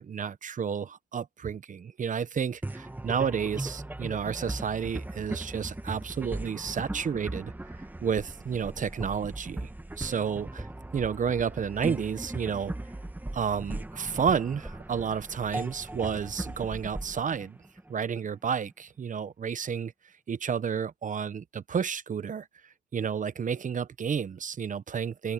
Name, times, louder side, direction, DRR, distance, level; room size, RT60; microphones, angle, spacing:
voice 1, 0.0-7.7 8.0-9.7 10.0-10.7 10.9-12.7 13.3-17.6 17.9-19.9 20.3-22.5 22.9-25.3, right 7 dB, 40° right, 1.0 m, -31 dB
sound 1, 2.6-18.3, right 1 dB, 10° right, 1.4 m, -38 dB
open air
cardioid pair, 90°, 20 cm